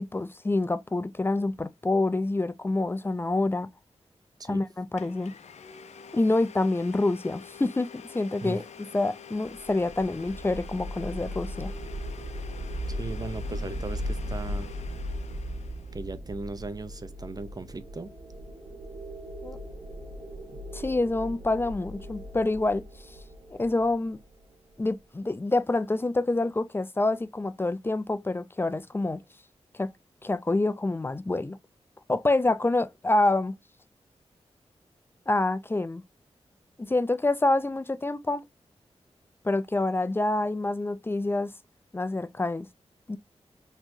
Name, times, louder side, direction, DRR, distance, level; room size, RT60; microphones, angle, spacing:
voice 1, 0.0-3.7 4.5-5.3 6.1-8.6 8.9-11.7 19.4-19.6 20.7-22.8 23.5-24.2 24.8-29.2 29.8-29.9 30.2-31.6 32.1-33.5 35.3-36.0 36.8-38.4 39.4-41.5 41.9-42.7 43.1-43.2, left 2 dB, 20° left, 0.4 m, -27 dB
Domestic sounds home sounds, 5.0-16.0, left 7 dB, 80° left, 0.5 m, -47 dB
sound 1, 9.5-24.7, equal, 70° right, 1.4 m, -37 dB
voice 2, 12.9-14.7 15.9-18.1, right 3 dB, 35° right, 0.6 m, -37 dB
4.1 x 3.0 x 2.6 m
wide cardioid pair, 85°, 11 cm